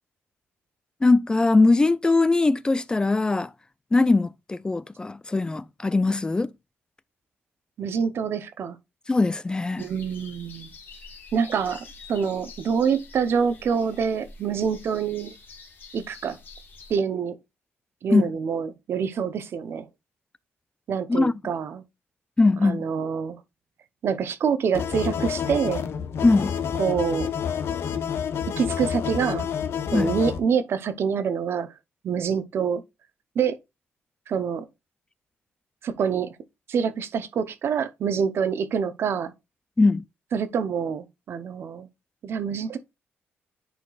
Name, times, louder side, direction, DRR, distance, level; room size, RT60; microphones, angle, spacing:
voice 1, 1.0-3.5 3.9-6.5 9.1-9.9 18.1-18.3 21.1-21.3 22.4-22.9 26.2-26.6 29.9-30.1 39.8-40.0, left 3 dB, 20° left, 0.3 m, -21 dB
voice 2, 7.8-8.8 9.8-10.7 11.3-15.3 15.9-16.4 16.9-17.4 18.0-19.9 20.9-21.8 22.6-23.4 24.0-25.8 26.8-27.3 28.6-29.5 29.9-31.7 32.0-32.8 33.3-33.6 34.3-34.7 35.8-36.3 36.7-39.3 40.3-41.9 42.2-42.8, right 6 dB, 65° right, 0.8 m, -26 dB
sound 1, 9.8-16.9, left 3 dB, 50° left, 2.1 m, -46 dB
sound 2, 24.7-30.4, left 8 dB, 70° left, 0.9 m, -28 dB
10.0 x 4.3 x 2.4 m
cardioid pair, 100°, 4 cm